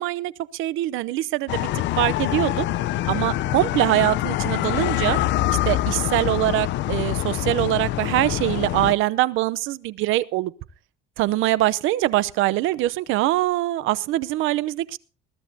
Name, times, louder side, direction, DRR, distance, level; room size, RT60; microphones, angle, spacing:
voice 1, 0.0-1.7 2.0-2.7 3.1-5.2 5.5-10.5 11.2-15.0, right 16 dB, 80° right, 0.7 m, -23 dB
sound 1, 1.5-8.9, left 15 dB, 65° left, 0.7 m, -25 dB
21.5 x 14.5 x 2.8 m
cardioid pair, 170°, 20 cm